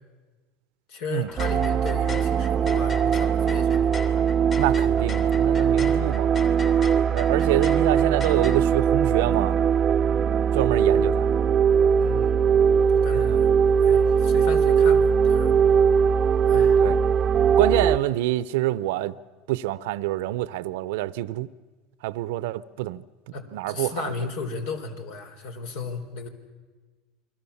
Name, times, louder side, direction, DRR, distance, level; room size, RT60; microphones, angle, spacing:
voice 1, 0.9-4.1 5.7-6.1 7.5-7.7 12.0-12.4 12.9-13.5 13.8-15.7 16.5-16.8 23.3-26.3, left 4 dB, 70° left, 4.2 m, -35 dB
sound 1, 1.2-8.6, left 4 dB, 35° left, 3.1 m, -40 dB
sound 2, 1.4-18.0, right 7 dB, 30° right, 0.7 m, -20 dB
voice 2, 4.6-6.4 7.1-9.6 10.5-11.3 13.1-13.4 16.8-17.0 17.6-19.1 19.5-21.5 22.0-23.0 23.5-24.0, right 16 dB, 75° right, 0.7 m, -26 dB
29.0 x 22.5 x 7.2 m
supercardioid pair, 120°, 0 cm